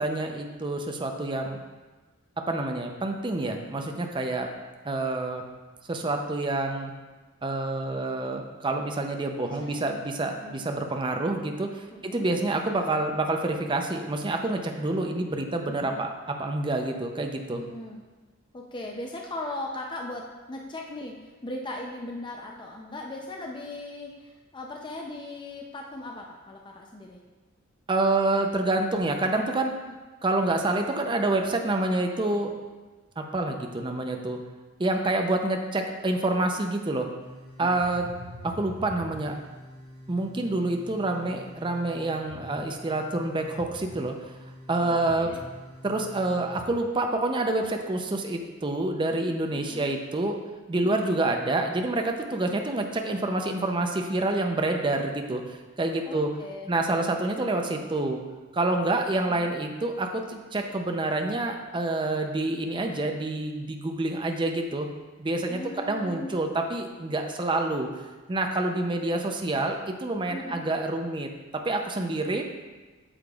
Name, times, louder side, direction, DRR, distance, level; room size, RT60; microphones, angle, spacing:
voice 1, 0.0-1.6 2.4-4.5 4.8-5.4 5.9-6.9 7.4-17.6 27.9-29.7 30.2-32.5 33.2-34.4 34.8-37.1 37.6-38.1 38.4-39.4 40.1-44.1 44.7-45.3 45.8-50.4 50.7-56.3 56.7-58.2 58.5-64.9 65.2-65.6 65.9-67.9 68.3-72.4, right 2 dB, 25° right, 4 dB, 0.5 m, -27 dB
voice 2, 9.4-10.7 11.9-12.3 15.8-16.0 17.5-18.0 18.5-21.1 21.4-27.2 44.8-45.4 49.5-49.9 50.8-51.1 52.4-52.6 56.0-56.7 65.5-66.3 70.3-70.6, left 2 dB, 25° left, 0 dB, 0.5 m, -38 dB
sound 1, 37.2-46.6, left 1 dB, 60° right, 2.3 m, -45 dB
8.7 x 6.6 x 2.4 m, 1.2 s
head